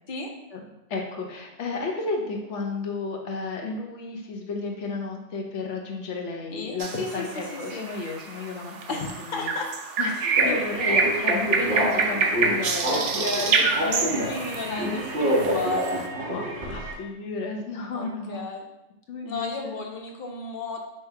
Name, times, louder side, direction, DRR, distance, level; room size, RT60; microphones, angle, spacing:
voice 1, 0.9-9.5 10.0-13.0 13.3-15.0 16.3-18.4 19.1-19.8, left 3 dB, 75° left, 1 dB, 1.1 m, -33 dB
voice 2, 6.5-7.2 7.5-7.9 8.9-9.7 10.4-10.6 12.8-16.4 17.9-18.6 19.2-20.8, left 3 dB, 50° left, 1 dB, 0.8 m, -33 dB
sound 1, 6.8-16.1, right 4 dB, 85° right, 0.9 m, -27 dB
sound 2, 10.3-16.9, equal, 55° right, 1.1 m, -28 dB
3.4 x 3.0 x 4.6 m, 0.90 s
omnidirectional pair, 1.2 m